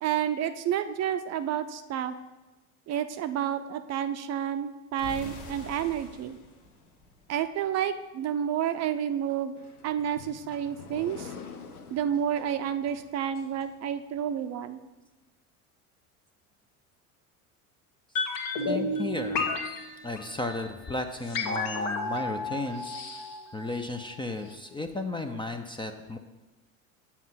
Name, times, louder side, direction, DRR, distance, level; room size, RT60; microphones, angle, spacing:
voice 1, 0.0-2.1 2.9-6.4 7.3-9.5 9.8-11.3 11.9-14.8, right 9 dB, 35° right, 10 dB, 0.6 m, -30 dB
sound 1, 5.0-7.8, left 1 dB, 70° left, 2.1 m, -45 dB
sound 2, 9.5-14.2, left 5 dB, 90° left, 0.9 m, -47 dB
sound 3, 18.2-24.2 24.5-24.6, left 3 dB, 55° left, 1.4 m, -32 dB
voice 2, 18.7-19.5 20.0-23.2 23.5-26.2, left 2 dB, 10° left, 6 dB, 0.5 m, -34 dB
7.4 x 5.5 x 5.7 m, 1.1 s
hypercardioid pair, 75°, 44 cm